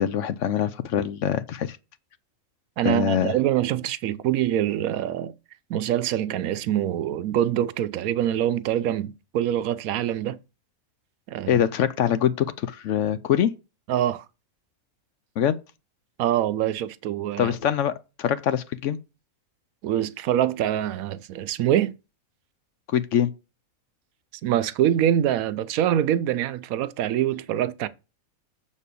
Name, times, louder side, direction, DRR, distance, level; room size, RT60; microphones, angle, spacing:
voice 1, 0.0-1.8 2.8-3.4 11.5-13.5 15.4-15.6 17.4-19.0 22.9-23.3, left 9 dB, 65° left, 0.9 m, -24 dB
voice 2, 2.8-5.3 5.7-10.4 11.3-11.6 13.9-14.2 16.2-17.5 19.8-21.9 24.4-27.9, right 11 dB, 80° right, 1.0 m, -24 dB
7.2 x 4.3 x 6.8 m
omnidirectional pair, 1.5 m